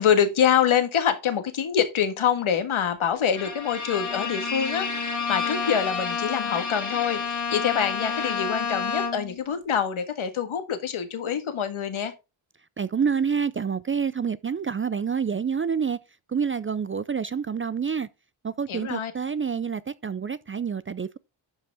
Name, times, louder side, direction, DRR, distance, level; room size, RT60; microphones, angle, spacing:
voice 1, 0.0-12.1 18.7-19.1, left 8 dB, 75° left, 1.7 m, -25 dB
Bowed string instrument, 3.3-9.4, left 5 dB, 35° left, 2.4 m, -29 dB
voice 2, 12.8-16.0 16.3-18.1 18.4-21.2, right 6 dB, 30° right, 0.4 m, -27 dB
11.5 x 5.1 x 3.5 m
cardioid pair, 65°, 49 cm